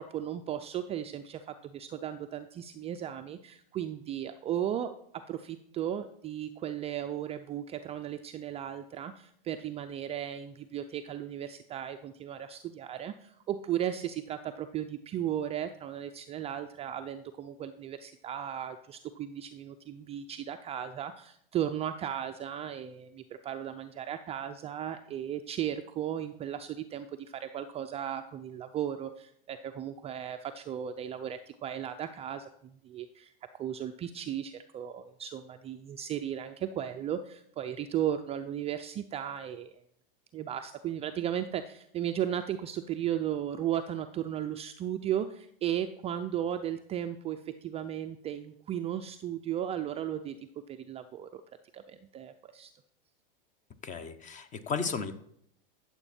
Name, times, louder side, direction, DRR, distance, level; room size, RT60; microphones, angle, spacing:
voice 1, 0.0-5.0 5.3-33.3 33.6-39.8 40.3-50.3 50.7-51.4 51.7-52.7, right 10 dB, 20° right, 7 dB, 0.4 m, -35 dB
voice 2, 53.8-55.1, left 5 dB, 25° left, 12 dB, 1.0 m, -34 dB
13.5 x 7.1 x 4.3 m, 0.71 s
supercardioid pair, 130°, 29 cm